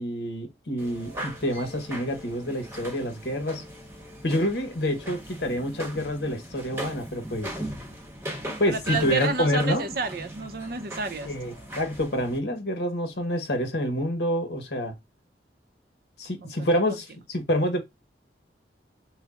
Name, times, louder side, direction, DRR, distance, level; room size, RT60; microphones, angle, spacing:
voice 1, 0.0-3.6 4.2-7.6 8.6-9.9 11.2-14.9 16.2-17.8, equal, 70° left, 1.2 m, -27 dB
sound 1, 0.8-12.4, equal, 15° right, 1.1 m, -38 dB
voice 2, 8.7-11.3 16.4-17.0, right 4 dB, 55° right, 0.7 m, -31 dB
6.2 x 2.2 x 2.4 m
head